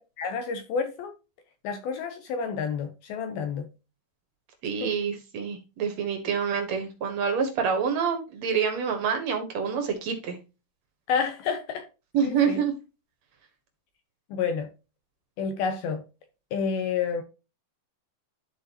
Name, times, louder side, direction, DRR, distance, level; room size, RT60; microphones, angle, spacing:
voice 1, 0.2-1.1 1.6-3.7 4.8-4.9 11.1-11.9 12.2-12.6 14.3-14.7 15.4-16.0 16.5-17.2, left 6 dB, 75° left, 2.3 m, -29 dB
voice 2, 4.6-10.4 12.1-12.7, right 6 dB, 70° right, 1.6 m, -27 dB
12.5 x 4.5 x 2.9 m
omnidirectional pair, 5.3 m